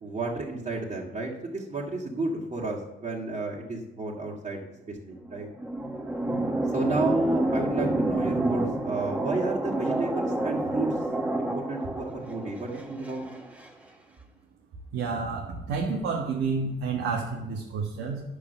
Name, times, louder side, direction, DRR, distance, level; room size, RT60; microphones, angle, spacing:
voice 1, 0.0-4.6 4.9-5.5 6.7-11.0 11.4-13.2, right 2 dB, 35° right, -5 dB, 2.0 m, -31 dB
sound 1, 5.1-13.7, right 1 dB, 5° right, 1.4 m, -29 dB
voice 2, 14.9-18.2, right 4 dB, 85° right, -1 dB, 1.5 m, -30 dB
9.8 x 6.4 x 6.9 m, 0.95 s
cardioid pair, 90°, 20 cm